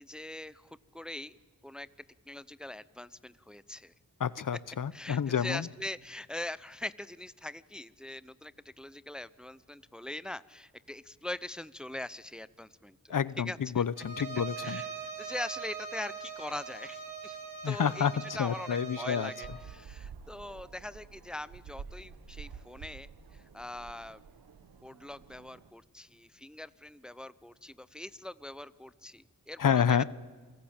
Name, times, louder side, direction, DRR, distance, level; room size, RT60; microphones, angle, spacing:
voice 1, 0.0-1.4 1.6-1.9 2.3-3.9 4.9-13.8 14.6-14.9 15.2-17.4 17.6-18.1 18.3-24.2 24.8-30.0, left 1 dB, ahead, 17 dB, 0.7 m, -42 dB
voice 2, 4.2-5.7 13.1-14.8 17.6-19.3 29.6-30.0, left 8 dB, 60° left, 19 dB, 0.9 m, -29 dB
Bowed string instrument, 14.0-19.6, right 6 dB, 65° right, 4.1 m, -41 dB
sound 1, 19.4-25.7, right 6 dB, 85° right, 1.3 m, -49 dB
28.0 x 17.0 x 8.9 m, 1.4 s
cardioid pair, 50°, 35 cm